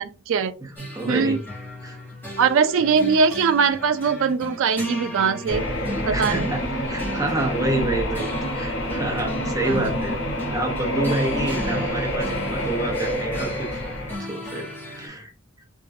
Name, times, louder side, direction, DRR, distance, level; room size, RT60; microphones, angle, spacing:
voice 1, 0.0-0.5 1.1-1.4 2.4-5.6 6.0-6.5 9.6-9.9, right 5 dB, 65° right, 0.3 m, -21 dB
voice 2, 0.6-1.4 1.8-2.0 6.1-6.6 6.9-10.2 10.5-13.7 14.2-15.3, right 2 dB, 15° right, 0.9 m, -28 dB
sound 1, 0.8-15.1, equal, 10° left, 1.6 m, -36 dB
sound 2, 5.5-14.1, equal, 65° left, 1.1 m, -27 dB
3.6 x 3.0 x 2.6 m
head